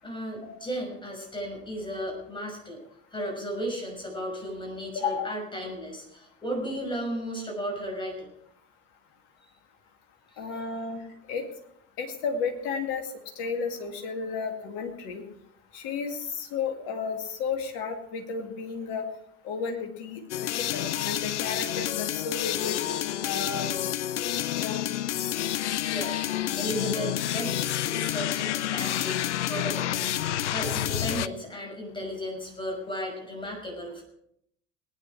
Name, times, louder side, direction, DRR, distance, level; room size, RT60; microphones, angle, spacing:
voice 1, 0.0-2.8 3.1-8.3 10.5-10.7 25.7-27.6 27.9-29.2 29.5-34.0, equal, 15° left, 1 dB, 6.0 m, -35 dB
voice 2, 4.9-5.3 10.4-11.0 11.3-11.5 12.0-13.1 13.4-15.2 15.7-19.0 19.4-23.8 24.5-24.9, left 5 dB, 60° left, 4 dB, 2.2 m, -33 dB
sound 1, 20.3-31.3, left 12 dB, 75° left, 0.5 m, -29 dB
19.5 x 9.6 x 4.7 m, 0.74 s
figure-of-eight pair, 65°, 35 cm